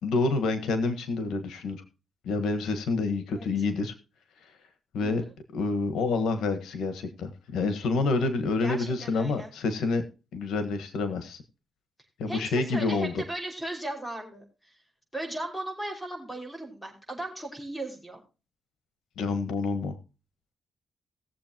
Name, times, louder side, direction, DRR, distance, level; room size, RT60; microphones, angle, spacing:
voice 1, 0.0-1.8 2.2-3.9 4.9-5.2 5.5-10.0 10.3-11.4 12.2-13.2 19.2-20.0, left 3 dB, 90° left, 9 dB, 1.5 m, -28 dB
voice 2, 8.6-9.5 12.3-14.7 15.1-18.2, right 1 dB, 5° left, 3 dB, 5.4 m, -37 dB
18.5 x 7.6 x 3.0 m, 0.30 s
cardioid pair, 85°, 0 cm